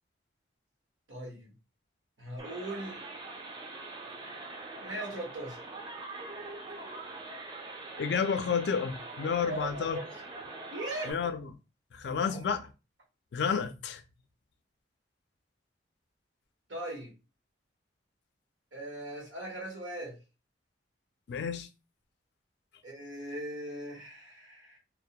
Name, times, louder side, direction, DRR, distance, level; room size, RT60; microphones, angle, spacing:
voice 1, 1.1-1.5 2.2-3.0 4.8-5.6 9.5-10.1 10.7-11.2 12.0-12.4 16.7-17.1 18.7-20.2 22.8-24.8, right 1 dB, 85° right, 0.9 m, -39 dB
sound 1, 2.4-11.1, right 3 dB, 25° right, 0.4 m, -43 dB
voice 2, 8.0-10.0 11.1-11.5 11.9-12.7 13.3-14.0 21.3-21.7, left 6 dB, 65° left, 0.3 m, -31 dB
2.2 x 2.1 x 2.7 m
head